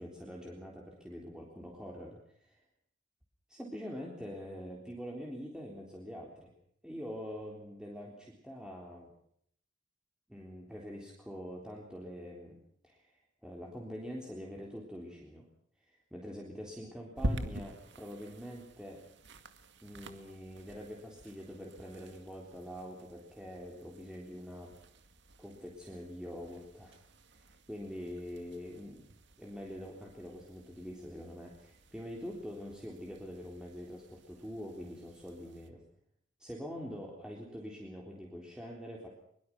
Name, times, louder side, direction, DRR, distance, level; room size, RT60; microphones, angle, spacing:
voice 1, 0.0-2.6 3.5-6.5 6.8-9.1 10.3-15.5 15.8-19.0 19.8-24.7 25.4-27.0 27.3-29.1 29.4-35.8 36.4-39.1, equal, 5° right, -2 dB, 3.7 m, -45 dB
sound 1, 17.1-35.7, equal, 65° right, 2.2 m, -46 dB
23.5 x 23.0 x 6.1 m, 0.68 s
head